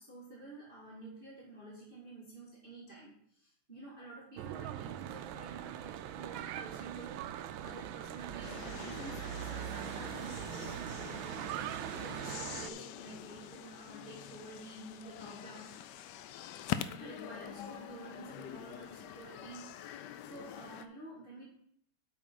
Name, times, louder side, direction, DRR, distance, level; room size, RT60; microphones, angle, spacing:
voice 1, 0.0-11.6 12.0-15.7 17.0-21.5, right 2 dB, 25° right, -6 dB, 2.0 m, -50 dB
Church bell / Traffic noise roadway noise, 4.4-12.7, right 11 dB, 75° right, 1.3 m, -41 dB
sound 1, 8.4-20.9, left 11 dB, 85° left, 0.9 m, -45 dB
8.4 x 5.6 x 5.2 m, 0.67 s
omnidirectional pair, 2.4 m